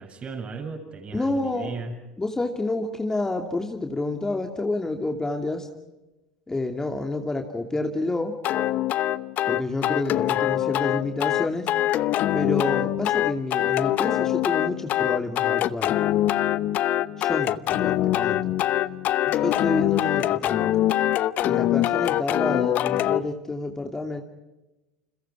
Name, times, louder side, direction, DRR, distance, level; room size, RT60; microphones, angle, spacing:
voice 1, 0.0-2.0 19.3-19.4, right 4 dB, 30° right, 6 dB, 7.2 m, -36 dB
voice 2, 1.1-1.8 2.2-5.7 6.5-8.4 9.5-11.7 12.3-15.9 17.2-18.4 19.3-20.7 21.4-24.2, left 2 dB, 15° left, 4 dB, 2.7 m, -29 dB
sound 1, 8.4-23.2, left 13 dB, 45° left, 0.8 m, -24 dB
30.0 x 29.0 x 4.8 m, 1.0 s
figure-of-eight pair, 75°, 4 cm